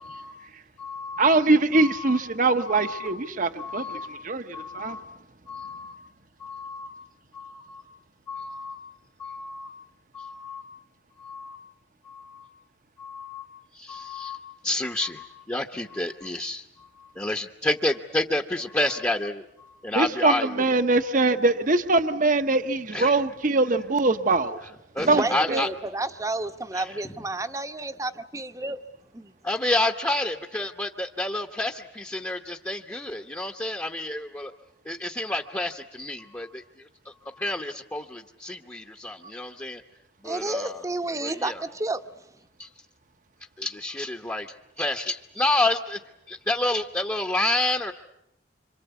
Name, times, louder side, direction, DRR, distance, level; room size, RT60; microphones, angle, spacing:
voice 1, 0.0-0.4 0.8-1.3 1.7-2.2 2.7-3.1 3.6-4.1 4.5-5.1 5.5-6.0 6.4-6.9 7.3-7.8 8.3-8.8 9.2-9.7 10.1-10.7 11.2-11.6 12.0-12.5 13.0-13.5 13.7-19.4 19.8-20.6 22.9-23.2 24.9-25.7 26.7-27.0 29.4-34.5 34.8-39.8 40.2-40.8 41.2-41.6 42.6-42.7 43.6-46.0 46.3-47.9, left 2 dB, 15° left, 2 dB, 1.1 m, -30 dB
voice 2, 1.2-5.0 19.9-24.7 25.1-25.2 25.5-25.6, right 3 dB, 45° right, 9 dB, 1.0 m, -23 dB
voice 3, 25.0-28.8 29.1-29.3 40.2-42.0, right 2 dB, 15° right, 9 dB, 1.0 m, -30 dB
27.5 x 26.0 x 8.2 m, 0.82 s
head